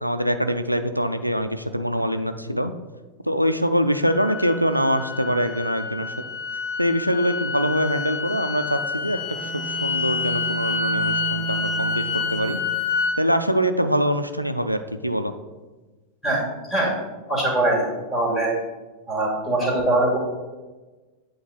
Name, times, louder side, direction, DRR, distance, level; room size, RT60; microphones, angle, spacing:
voice 1, 0.0-2.7 3.3-6.1 6.8-12.0 12.3-12.6 13.2-15.3, equal, 90° right, 9 dB, 0.4 m, -24 dB
sound 1, 4.0-13.2, left 4 dB, 35° left, 1.4 m, -28 dB
Bowed string instrument, 9.0-12.8, right 5 dB, 80° left, 2.5 m, -33 dB
voice 2, 17.3-18.5 19.1-20.2, right 2 dB, 10° left, -3 dB, 2.4 m, -22 dB
8.5 x 3.9 x 5.1 m, 1.2 s
figure-of-eight pair, 90°, 0 cm